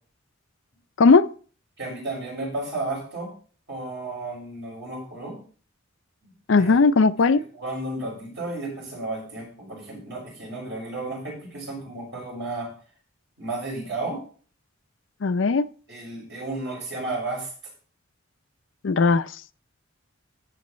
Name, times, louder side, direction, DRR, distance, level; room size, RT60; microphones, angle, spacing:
voice 1, 1.8-3.3 3.7-5.4 6.6-6.9 7.5-12.7 13.4-14.2 15.9-17.5, right 2 dB, 60° right, 5.8 m, -33 dB
voice 2, 6.5-7.4 15.2-15.7 18.8-19.3, left 4 dB, 65° left, 0.5 m, -17 dB
13.5 x 7.7 x 3.2 m
head